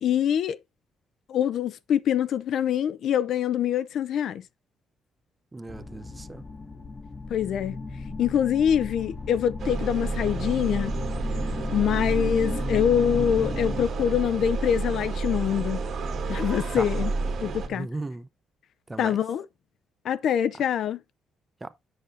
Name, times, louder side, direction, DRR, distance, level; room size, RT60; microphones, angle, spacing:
voice 1, 0.0-0.6 1.3-4.4 7.3-7.8 8.2-10.9 11.7-15.8 16.3-17.1 17.4-17.9 19.0-19.4 20.0-21.0, left 9 dB, 70° left, 0.5 m, -25 dB
voice 2, 5.5-6.4 16.8-16.9 17.7-18.3 18.9-19.2 21.6-21.7, right 2 dB, 20° right, 0.7 m, -36 dB
sound 1, 5.7-13.9, left 3 dB, 30° left, 0.9 m, -35 dB
sound 2, 9.6-17.7, right 3 dB, 65° right, 1.9 m, -30 dB
7.8 x 6.3 x 2.6 m
cardioid pair, 90°, 0 cm